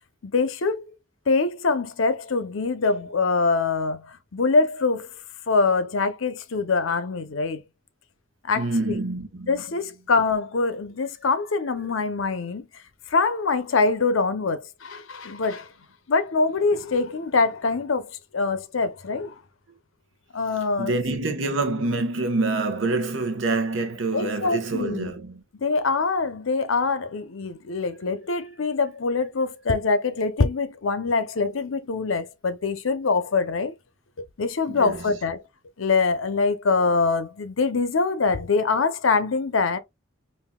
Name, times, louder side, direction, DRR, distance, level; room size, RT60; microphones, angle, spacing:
voice 1, 0.2-0.9 1.3-5.1 5.5-7.6 8.4-9.0 9.5-12.7 13.1-15.7 16.1-19.4 20.3-21.0 24.1-25.1 25.5-33.7 34.4-35.4 35.8-39.8, left 4 dB, 85° left, 0.7 m, -24 dB
voice 2, 8.5-9.6 20.8-25.4 34.7-35.0, right 2 dB, 75° right, 0.9 m, -26 dB
5.5 x 2.5 x 2.2 m
head